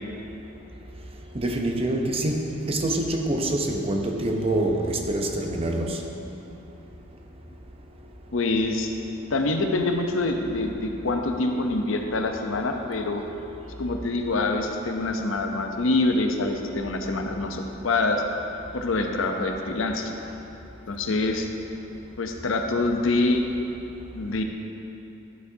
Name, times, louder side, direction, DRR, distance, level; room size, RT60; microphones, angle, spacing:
voice 1, 1.3-6.0, right 1 dB, 30° right, 2 dB, 0.7 m, -26 dB
voice 2, 8.3-8.9 9.3-13.2 13.8-18.2 18.7-20.1 20.9-21.5 22.2-23.4 24.1-24.4, left 2 dB, 75° left, 4 dB, 0.7 m, -25 dB
11.5 x 8.3 x 2.7 m, 2.9 s
head